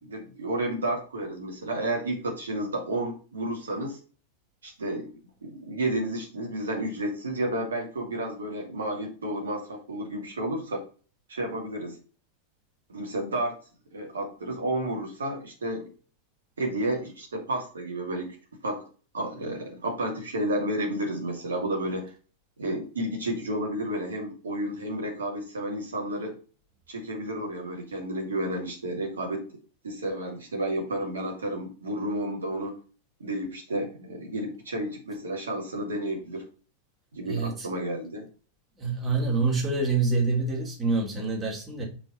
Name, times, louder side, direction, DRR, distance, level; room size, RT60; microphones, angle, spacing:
voice 1, 0.0-4.0 4.6-10.8 11.3-12.0 12.9-13.6 13.9-15.9 16.6-18.4 18.6-18.8 19.1-22.1 22.6-26.4 26.9-29.5 29.8-32.8 33.2-36.5 37.1-38.3, right 1 dB, 70° right, 2.5 m, -31 dB
voice 2, 37.3-37.7 38.8-41.8, right 3 dB, 20° right, 2.8 m, -26 dB
6.0 x 4.6 x 5.3 m
figure-of-eight pair, 90°, 0 cm